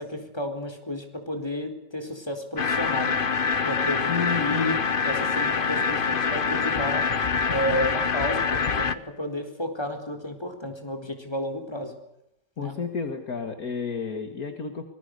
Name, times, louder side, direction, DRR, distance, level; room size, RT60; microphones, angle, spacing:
voice 1, 0.0-3.2 3.6-4.1 4.4-7.1 7.5-11.9 12.6-12.8, left 1 dB, 15° left, 4 dB, 4.0 m, -32 dB
sound 1, 2.6-8.9, left 5 dB, 35° left, 1.0 m, -25 dB
voice 2, 4.1-4.8 12.6-14.8, left 5 dB, 55° left, 6 dB, 2.3 m, -31 dB
25.5 x 20.5 x 6.7 m, 0.81 s
omnidirectional pair, 1.9 m